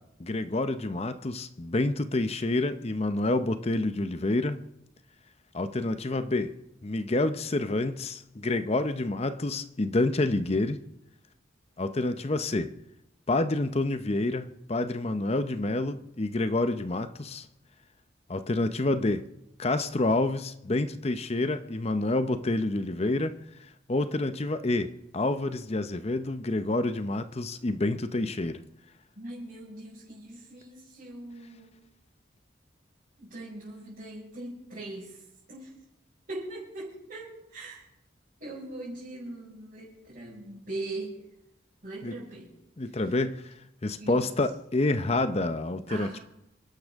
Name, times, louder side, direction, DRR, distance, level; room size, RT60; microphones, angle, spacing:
voice 1, 0.2-4.6 5.5-6.5 6.8-10.8 11.8-12.7 13.3-17.5 18.3-19.2 19.6-23.3 23.9-28.6 42.0-42.1 42.8-43.5 43.8-46.2, left 2 dB, 35° left, 0.7 m, -28 dB
voice 2, 29.2-31.8 33.2-35.7 36.3-37.8 38.4-41.2 41.8-42.5 42.8-43.2 44.0-44.2 45.9-46.2, right 2 dB, 45° right, 5.4 m, -41 dB
27.5 x 11.5 x 3.6 m
head